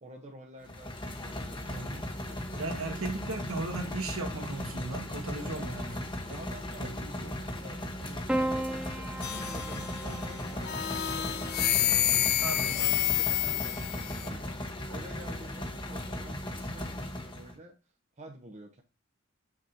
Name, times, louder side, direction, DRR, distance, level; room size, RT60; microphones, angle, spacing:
voice 1, 0.0-2.6 5.4-6.0 6.3-18.8, right 1 dB, 35° right, 0.9 m, -50 dB
sound 1, 0.7-17.5, left 1 dB, 20° left, 1.1 m, -37 dB
voice 2, 1.7-2.0 2.6-6.0 6.8-7.3 10.0-10.2 12.4-12.9 14.4-14.5, right 2 dB, 75° right, 1.5 m, -37 dB
Piano, 8.3-12.8 14.0-14.6, right 1 dB, 5° right, 0.5 m, -37 dB
sound 2, 9.2-10.1 10.6-14.3, left 13 dB, 50° left, 0.4 m, -29 dB
6.1 x 6.0 x 2.7 m
head